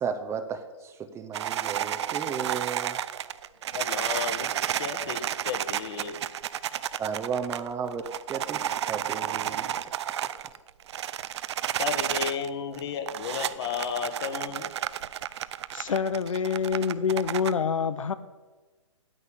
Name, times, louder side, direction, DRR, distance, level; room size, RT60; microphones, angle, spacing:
voice 1, 0.0-3.0 7.0-9.7 10.2-10.3, right 6 dB, 15° right, 9 dB, 0.7 m, -34 dB
sound 1, 1.3-12.5 12.7-17.5, right 10 dB, 55° right, 0.5 m, -31 dB
voice 2, 3.4-6.2 6.8-7.2 11.8-14.7 16.3-16.4, left 7 dB, 50° left, 8 dB, 1.6 m, -34 dB
voice 3, 15.7-18.1, left 6 dB, 75° left, 13 dB, 0.7 m, -26 dB
10.0 x 8.2 x 8.6 m, 1.2 s
hypercardioid pair, 125°, 17 cm